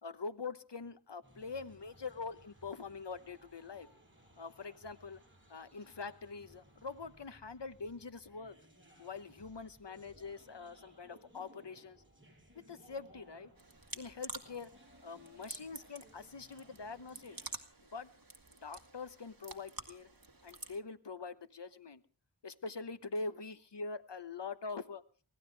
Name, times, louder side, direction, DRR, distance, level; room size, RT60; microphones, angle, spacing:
voice 1, 0.0-3.9 4.4-5.2 5.5-8.6 9.0-12.0 12.5-13.5 13.9-14.7 15.0-17.4 17.9-18.1 18.6-20.1 20.4-22.0 22.4-25.0, left 4 dB, 60° left, 13 dB, 1.0 m, -44 dB
sound 1, 1.2-17.6, equal, 25° right, 6.7 m, -62 dB
sound 2, 13.6-20.8, right 3 dB, 45° right, 1.9 m, -49 dB
23.5 x 17.0 x 3.4 m, 0.36 s
wide cardioid pair, 40°, 49 cm